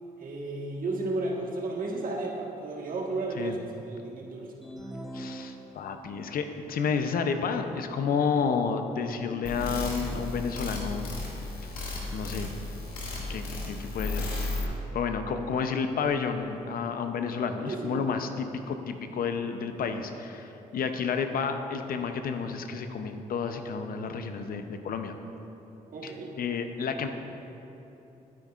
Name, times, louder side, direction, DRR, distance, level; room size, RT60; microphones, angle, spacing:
voice 1, 0.2-4.5 17.7-18.1 25.9-26.3, right 2 dB, 65° right, -1 dB, 1.5 m, -33 dB
sound 1, 4.6-6.2, right 1 dB, ahead, 0.9 m, -42 dB
voice 2, 5.1-11.1 12.1-12.5 13.3-25.2 26.0-26.1 26.4-27.1, left 5 dB, 70° left, 7 dB, 0.7 m, -31 dB
sound 2, 9.4-14.6, left 2 dB, 90° left, 1.4 m, -34 dB
12.5 x 9.0 x 2.5 m, 3.0 s
supercardioid pair, 50°, 16 cm